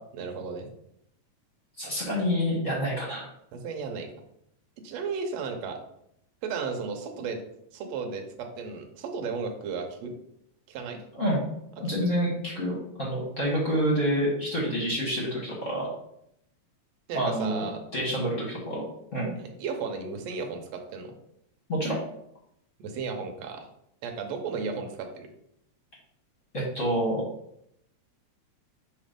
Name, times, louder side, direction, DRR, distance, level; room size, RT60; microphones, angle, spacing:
voice 1, 0.1-0.7 3.5-4.1 4.8-5.8 6.4-7.4 7.7-10.1 10.7-11.0 12.0-12.1 17.1-17.8 19.4-21.1 22.8-23.7 24.0-25.3, right 5 dB, 70° right, 4 dB, 1.9 m, -34 dB
voice 2, 1.8-3.3 11.1-11.4 11.8-15.9 17.1-17.6 17.9-18.8 19.1-19.3 21.7-22.0 26.5-27.2, equal, 35° left, -5 dB, 1.4 m, -27 dB
5.9 x 3.2 x 5.1 m, 0.77 s
omnidirectional pair, 3.3 m